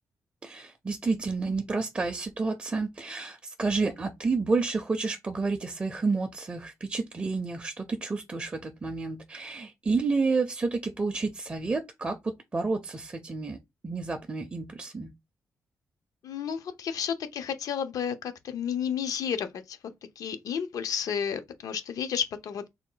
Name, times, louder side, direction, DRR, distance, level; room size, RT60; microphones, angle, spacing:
voice 1, 0.4-13.6 13.8-15.1, right 4 dB, 20° right, 0.4 m, -30 dB
voice 2, 16.2-19.8 20.2-22.7, left 8 dB, 70° left, 0.6 m, -32 dB
3.5 x 2.2 x 3.8 m
wide cardioid pair, 175°, 6 cm